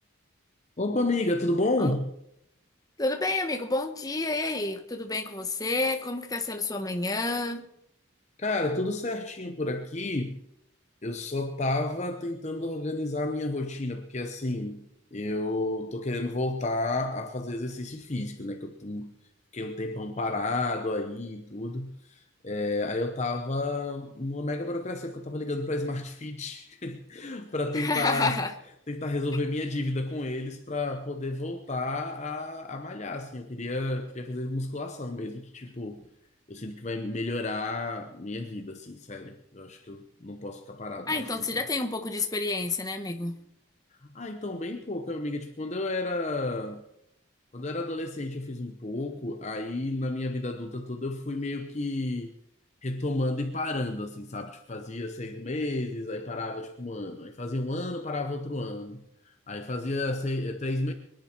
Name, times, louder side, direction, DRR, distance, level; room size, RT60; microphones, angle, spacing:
voice 1, 0.8-2.1 8.4-10.4 11.0-19.2 19.5-28.4 28.9-36.0 36.5-41.3 44.0-46.8 47.5-52.3 52.8-60.9, left 2 dB, 35° left, 0.8 m, -31 dB
voice 2, 3.0-7.6 27.7-28.5 41.1-43.4, left 2 dB, 20° left, 1.1 m, -29 dB
24.0 x 10.5 x 4.5 m
head